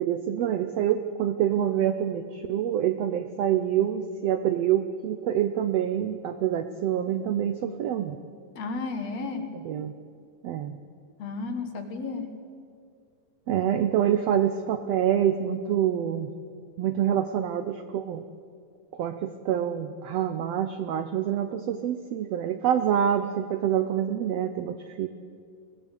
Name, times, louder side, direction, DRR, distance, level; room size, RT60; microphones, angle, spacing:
voice 1, 0.0-8.2 9.6-9.9 10.4-10.8 13.5-16.3 16.8-18.2 18.9-25.1, right 10 dB, 80° right, 9 dB, 1.5 m, -26 dB
voice 2, 8.6-9.5 11.2-12.3, left 3 dB, 60° left, 6 dB, 2.5 m, -33 dB
22.5 x 17.0 x 8.2 m, 2.2 s
omnidirectional pair, 3.8 m